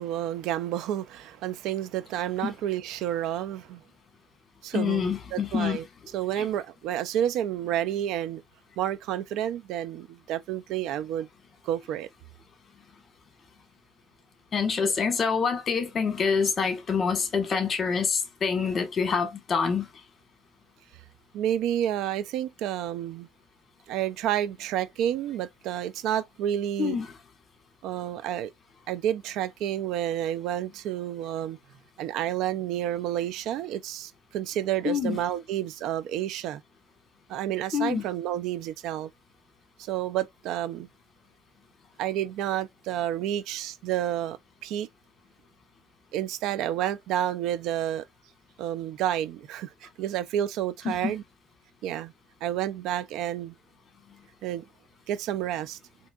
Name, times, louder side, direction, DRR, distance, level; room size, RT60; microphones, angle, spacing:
voice 1, 0.0-3.8 4.6-5.8 6.1-8.4 8.8-11.3 11.6-12.1 14.8-14.9 21.3-23.3 23.9-27.0 27.8-28.5 28.9-31.6 32.0-36.6 37.3-39.1 39.8-40.9 42.0-44.9 46.1-48.0 48.6-51.2 51.8-52.1 52.4-53.5 54.4-54.7 55.1-55.8, right 11 dB, 75° right, 0.4 m, -30 dB
voice 2, 4.7-5.8 6.4-6.5 14.5-19.9 26.8-27.1 34.8-35.2 37.7-38.0 50.8-51.1, left 6 dB, 40° left, 1.3 m, -26 dB
4.4 x 2.8 x 2.4 m
cardioid pair, 110°, 0 cm